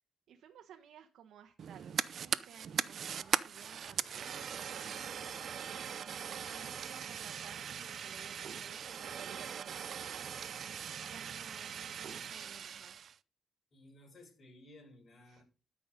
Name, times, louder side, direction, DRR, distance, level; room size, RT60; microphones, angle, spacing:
voice 1, 0.3-10.4 11.0-13.1 15.2-15.4, right 8 dB, 75° right, 1.3 m, -56 dB
Fire, 1.6-13.1, right 8 dB, 60° right, 0.6 m, -40 dB
sound 1, 3.5-8.8, left 6 dB, 90° left, 4.1 m, -63 dB
voice 2, 13.7-15.4, left 1 dB, 50° left, 7.4 m, -57 dB
13.0 x 6.1 x 5.2 m
cardioid pair, 90°, 0 cm